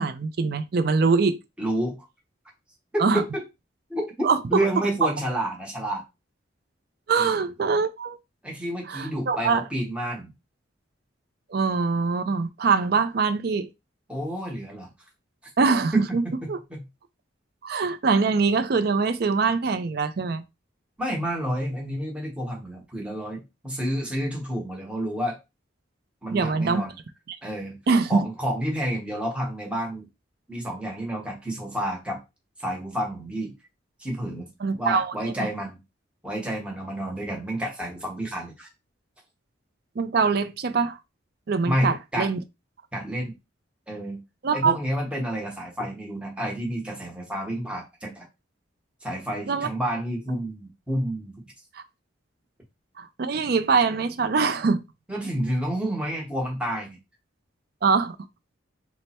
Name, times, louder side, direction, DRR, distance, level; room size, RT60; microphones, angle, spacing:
voice 1, 0.0-1.4 3.0-3.2 4.2-4.4 7.1-8.2 8.9-9.6 11.5-13.7 15.6-16.2 16.5-16.6 17.6-20.4 26.3-26.8 27.3-27.4 27.9-28.3 34.6-35.5 40.0-41.0 41.5-42.4 44.4-44.8 49.5-49.7 51.7-51.8 53.0-54.8 57.8-58.2, right 4 dB, 50° right, 0.4 m, -23 dB
voice 2, 1.6-2.1 2.9-3.4 3.9-6.0 7.2-7.4 8.4-10.3 14.1-14.9 15.9-16.0 16.4-16.8 21.0-25.4 26.2-26.9 27.4-27.8 28.1-30.1 30.5-32.2 32.6-33.5 34.0-34.5 34.8-35.8 36.2-38.7 41.6-42.3 42.9-43.3 43.9-44.2 44.5-48.2 49.0-51.3 55.1-57.0, right 1 dB, 5° right, 0.9 m, -29 dB
3.2 x 2.0 x 4.2 m
head